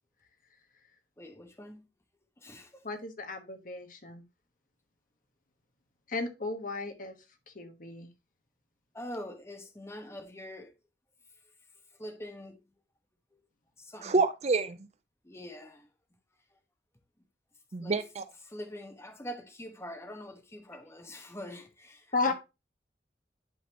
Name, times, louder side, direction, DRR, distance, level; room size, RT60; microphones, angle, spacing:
voice 1, 1.2-1.8 2.4-2.9 8.9-10.7 12.0-12.6 13.3-13.4 13.8-14.2 15.2-15.9 17.8-18.0 18.5-22.3, equal, 15° left, 1.2 m, -44 dB
voice 2, 2.8-4.2 6.1-7.1 7.5-8.1 22.1-22.3, left 3 dB, 50° left, 1.3 m, -34 dB
voice 3, 14.0-14.8 17.7-18.3, right 3 dB, 40° right, 0.5 m, -27 dB
11.0 x 4.1 x 2.9 m
head